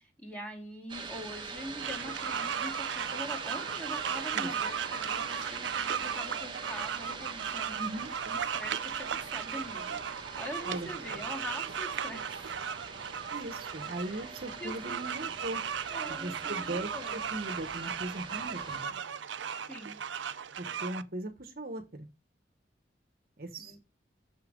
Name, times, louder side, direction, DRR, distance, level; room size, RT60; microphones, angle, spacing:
voice 1, 0.0-7.9 8.2-12.6 14.0-14.3 14.6-15.0 15.9-17.2 19.7-20.0 23.6-23.8, equal, 10° left, 2.1 m, -43 dB
sound 1, 0.9-18.8, right 4 dB, 25° right, 1.1 m, -44 dB
sound 2, 1.8-21.0, right 7 dB, 85° right, 0.5 m, -36 dB
voice 2, 7.8-8.1 10.6-11.2 13.3-15.6 16.1-19.0 20.6-22.1 23.4-23.8, right 1 dB, 55° right, 1.2 m, -39 dB
6.9 x 5.7 x 5.2 m
head